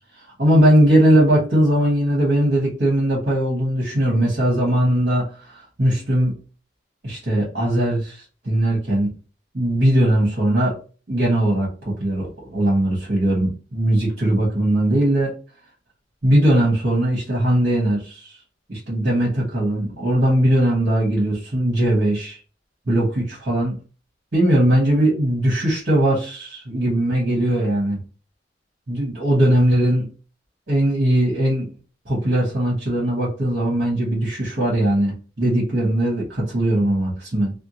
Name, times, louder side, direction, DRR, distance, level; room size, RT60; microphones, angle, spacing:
voice 1, 0.4-6.4 7.0-9.1 9.5-10.7 11.1-15.3 16.2-18.3 18.7-22.4 22.9-23.8 24.3-28.0 28.9-30.0 30.7-31.7 32.1-37.5, right 1 dB, 55° right, -4 dB, 1.7 m, -19 dB
3.5 x 2.3 x 2.9 m, 0.35 s
head